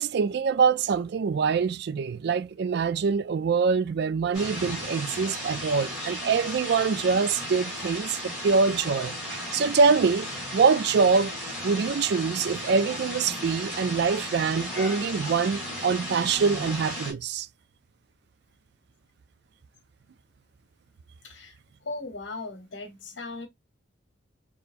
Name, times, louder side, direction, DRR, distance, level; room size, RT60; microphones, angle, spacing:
voice 1, 0.0-10.3 10.5-11.3 11.6-17.5, right 5 dB, 60° right, 0.3 m, -24 dB
sound 1, 4.3-17.1, equal, 5° right, 3.4 m, -35 dB
voice 2, 21.2-21.6 21.8-23.5, left 3 dB, 65° left, 1.0 m, -37 dB
6.7 x 2.9 x 2.5 m
head